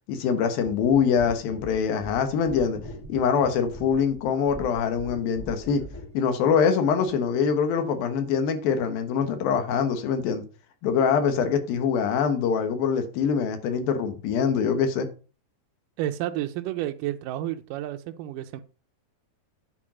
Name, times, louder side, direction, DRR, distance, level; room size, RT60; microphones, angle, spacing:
voice 1, 0.1-2.8 3.1-5.8 6.1-10.4 10.8-15.1, left 6 dB, 85° left, 3.1 m, -24 dB
sound 1, 0.6-6.2 7.1-7.2, left 1 dB, 10° left, 0.8 m, -42 dB
voice 2, 16.0-18.6, right 13 dB, 80° right, 2.2 m, -31 dB
9.7 x 4.8 x 6.2 m
omnidirectional pair, 4.0 m